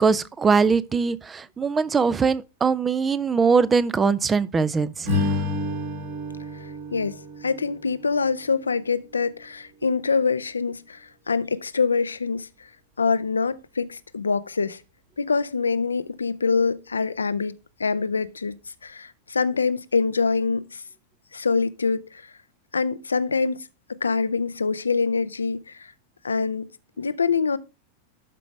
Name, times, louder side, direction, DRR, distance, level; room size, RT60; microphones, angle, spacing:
voice 1, 0.0-5.1, right 5 dB, 15° right, 0.6 m, -21 dB
Strum, 5.0-9.4, left 2 dB, 55° right, 4.4 m, -30 dB
voice 2, 6.5-12.7 13.0-14.8 15.2-18.5 18.8-20.8 21.3-22.3 22.7-23.7 24.0-25.9 26.2-26.7 27.0-27.6, left 4 dB, 75° left, 0.6 m, -25 dB
12.0 x 5.2 x 3.2 m
figure-of-eight pair, 90°, 0 cm